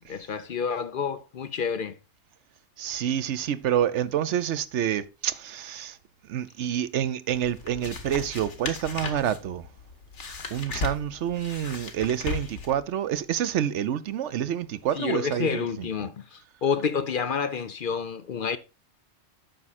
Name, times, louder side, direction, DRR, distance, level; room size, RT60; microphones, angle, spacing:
voice 1, 0.0-2.0 14.9-18.6, left 6 dB, 55° left, 0.7 m, -29 dB
voice 2, 2.8-6.0 6.3-9.7 10.5-15.9, right 10 dB, 80° right, 1.0 m, -28 dB
sound 1, 7.3-12.8, left 4 dB, 85° left, 1.7 m, -36 dB
9.0 x 6.1 x 4.1 m
omnidirectional pair, 1.2 m